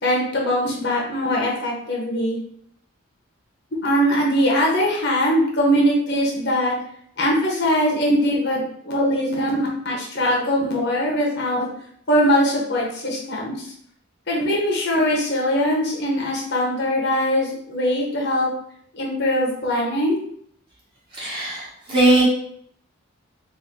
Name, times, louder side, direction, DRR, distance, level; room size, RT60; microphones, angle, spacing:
voice 1, 0.0-2.4 3.8-6.7 7.2-11.7 12.1-13.7 14.3-18.5 18.9-20.2, equal, 55° left, -3 dB, 1.2 m, -21 dB
voice 2, 21.1-22.2, right 2 dB, 25° right, -7 dB, 1.6 m, -19 dB
4.2 x 2.9 x 3.8 m, 0.65 s
head